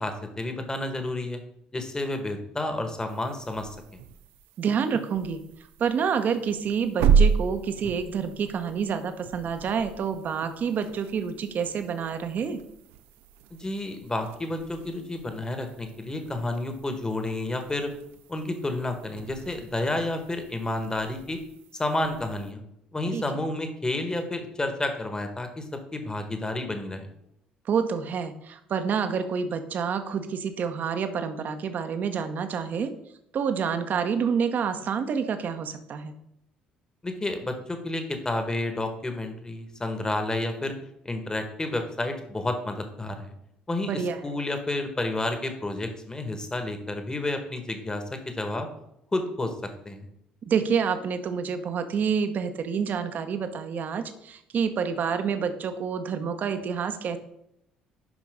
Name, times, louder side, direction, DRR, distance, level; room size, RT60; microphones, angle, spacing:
voice 1, 0.0-1.4 1.7-4.0 13.5-17.9 18.3-21.4 21.7-22.6 22.9-27.1 37.0-40.7 41.0-43.3 43.7-48.7 49.1-49.5 49.8-50.1, left 2 dB, 20° left, 6 dB, 1.6 m, -30 dB
sound 1, 3.1-22.5, right 6 dB, 65° right, 0.5 m, -32 dB
voice 2, 4.6-5.4 5.8-12.6 23.1-23.2 27.7-32.9 33.3-36.1 43.8-44.2 50.5-57.2, right 6 dB, 45° right, 8 dB, 1.0 m, -28 dB
11.0 x 5.1 x 3.8 m, 0.77 s
figure-of-eight pair, 50°, 4 cm